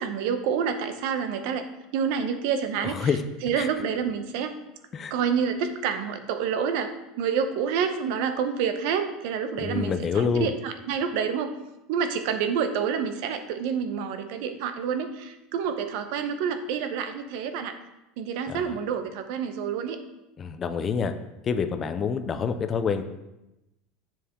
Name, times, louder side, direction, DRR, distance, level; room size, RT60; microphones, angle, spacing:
voice 1, 0.0-1.6 1.9-3.1 3.4-4.6 5.1-6.9 7.2-11.5 11.9-17.7 18.2-20.0, right 7 dB, 65° right, 9 dB, 0.8 m, -28 dB
voice 2, 2.8-3.2 3.6-3.7 4.9-5.1 9.6-10.5 18.5-18.7 20.4-21.1 21.4-23.0, left 6 dB, 25° left, 9 dB, 0.5 m, -27 dB
7.3 x 6.8 x 3.7 m, 0.94 s
supercardioid pair, 155°, 0 cm